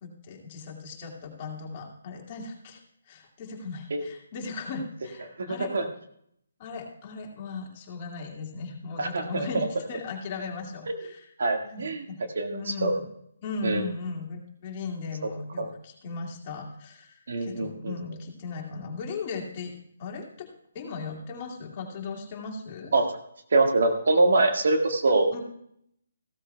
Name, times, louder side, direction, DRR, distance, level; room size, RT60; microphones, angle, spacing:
voice 1, 0.0-2.8 3.1-5.7 6.6-11.3 11.6-12.2 12.5-13.1 13.4-19.7 20.0-22.9 25.3-25.4, left 4 dB, 35° left, 0 dB, 2.3 m, -37 dB
voice 2, 5.4-5.8 9.0-9.7 11.4-12.1 12.4-12.9 13.6-13.8 15.6-15.7 17.3-17.9 22.9-23.0 23.5-25.3, right 2 dB, 60° right, 3 dB, 1.8 m, -24 dB
15.0 x 13.5 x 2.3 m, 0.70 s
figure-of-eight pair, 145°, 0 cm